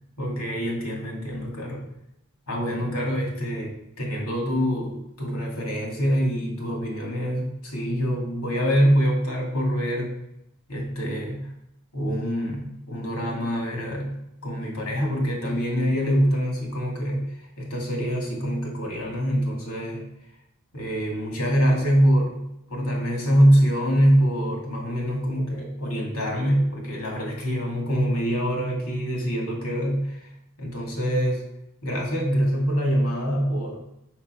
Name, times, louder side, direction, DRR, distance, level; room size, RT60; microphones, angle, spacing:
voice 1, 0.2-1.9 2.5-10.2 10.7-11.5 11.9-20.0 20.7-30.3 30.6-31.4 31.8-33.8, equal, 85° left, -1 dB, 2.4 m, -24 dB
6.0 x 5.9 x 4.5 m, 0.82 s
head